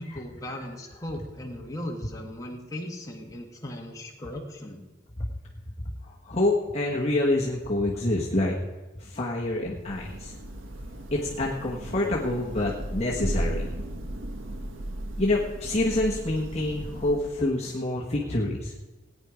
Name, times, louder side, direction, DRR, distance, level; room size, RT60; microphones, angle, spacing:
voice 1, 0.0-4.8, left 1 dB, 15° left, 0 dB, 1.7 m, -37 dB
voice 2, 6.0-8.6 9.0-10.3 11.1-13.7 15.2-18.7, left 1 dB, 30° left, -3 dB, 1.3 m, -27 dB
Thunder / Rain, 9.6-17.6, right 1 dB, 85° right, 1.4 m, -36 dB
18.0 x 9.5 x 5.0 m, 1.2 s
head